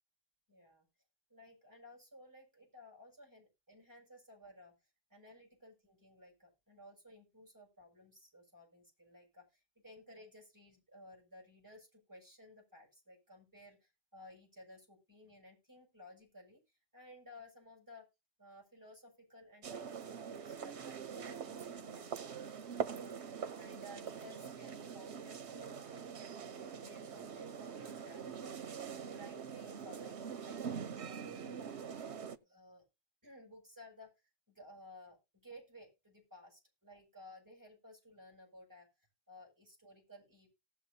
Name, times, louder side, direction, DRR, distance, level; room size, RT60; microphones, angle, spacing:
voice 1, 0.5-0.8 1.3-4.7 5.1-16.6 16.9-18.1 18.4-22.1 22.4-31.6 32.4-32.8 33.2-34.1 34.5-40.5, left 1 dB, 15° right, 0 dB, 7.6 m, -57 dB
sound 1, 19.6-32.4, right 7 dB, 90° right, 1.2 m, -44 dB
18.5 x 7.9 x 2.8 m, 0.25 s
omnidirectional pair, 1.1 m